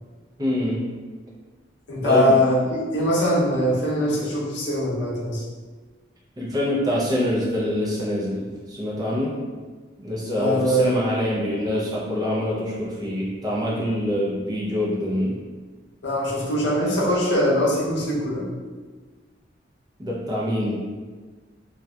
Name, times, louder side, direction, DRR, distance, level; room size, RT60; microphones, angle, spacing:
voice 1, 0.4-0.8 2.0-2.4 6.4-9.3 10.0-15.4 20.0-20.8, left 1 dB, 20° right, -5 dB, 0.5 m, -25 dB
voice 2, 1.9-5.4 10.4-10.9 16.0-18.5, equal, 75° left, -6 dB, 0.7 m, -22 dB
2.7 x 2.2 x 2.2 m, 1.4 s
head